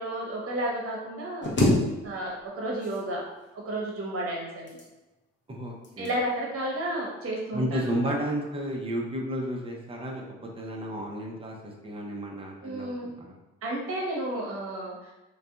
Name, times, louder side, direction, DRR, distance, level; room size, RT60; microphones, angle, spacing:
voice 1, 0.0-1.5 2.0-3.2 3.6-4.8 6.0-8.1 12.6-13.1 13.6-15.1, right 1 dB, 45° right, -2 dB, 0.9 m, -32 dB
sound 1, 1.4-2.5 2.8-3.5 4.4-5.2 5.8-6.2 6.6-6.9, left 1 dB, 40° left, 0.7 m, -27 dB
voice 2, 5.5-6.1 7.5-13.4, equal, 20° right, 0 dB, 0.6 m, -32 dB
2.6 x 2.3 x 2.4 m, 1.1 s
hypercardioid pair, 60°, 31 cm